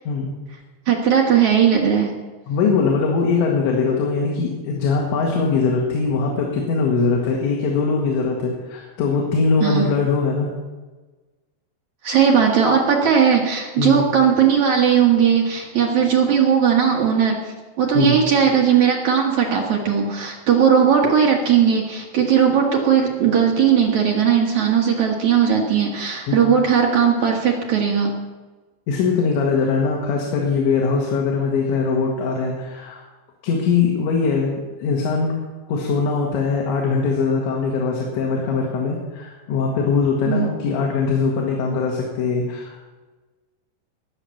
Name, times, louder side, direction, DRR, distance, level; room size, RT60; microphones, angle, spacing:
voice 1, 0.9-2.1 9.6-9.9 12.0-17.4 17.8-28.1 40.3-40.5, right 7 dB, 60° right, -1 dB, 2.2 m, -17 dB
voice 2, 2.5-10.5 13.8-14.0 18.0-18.2 26.3-26.4 28.9-33.0 33.4-34.5 34.8-35.3 35.7-43.0, left 4 dB, 80° left, -1 dB, 4.1 m, -21 dB
19.5 x 7.0 x 7.1 m, 1.3 s
omnidirectional pair, 5.1 m